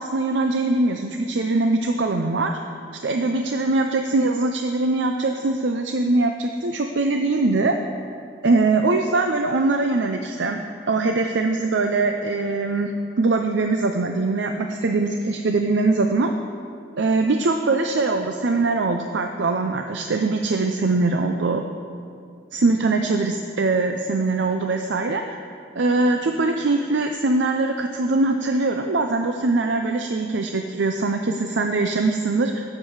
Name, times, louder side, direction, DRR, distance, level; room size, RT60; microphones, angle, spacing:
voice 1, 0.0-2.5 3.0-7.8 8.4-10.6 10.9-16.3 17.0-21.6 22.5-25.2 25.8-32.6, right 3 dB, 90° right, 5 dB, 0.6 m, -22 dB
17.0 x 7.5 x 4.8 m, 2.4 s
head